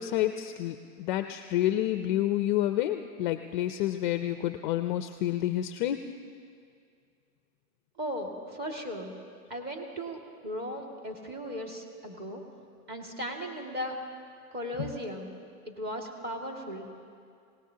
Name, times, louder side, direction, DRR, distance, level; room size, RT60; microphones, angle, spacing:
voice 1, 0.0-6.0 14.8-14.9, left 13 dB, 35° left, 9 dB, 0.4 m, -29 dB
voice 2, 8.0-9.1 9.5-12.4 12.9-13.9 14.5-15.3 15.7-16.9, equal, 20° right, 1 dB, 2.1 m, -37 dB
26.5 x 18.0 x 2.8 m, 2.3 s
hypercardioid pair, 135°, 44 cm